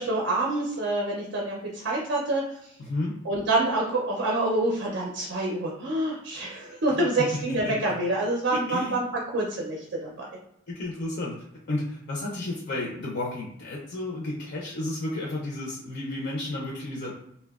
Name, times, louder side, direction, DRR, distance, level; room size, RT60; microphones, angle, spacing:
voice 1, 0.0-2.7 3.2-9.0 9.3-10.2, right 2 dB, 65° right, -2 dB, 0.4 m, -27 dB
voice 2, 8.5-8.9 10.7-17.1, left 2 dB, 55° left, -3 dB, 0.4 m, -32 dB
2.7 x 2.1 x 2.3 m, 0.75 s
head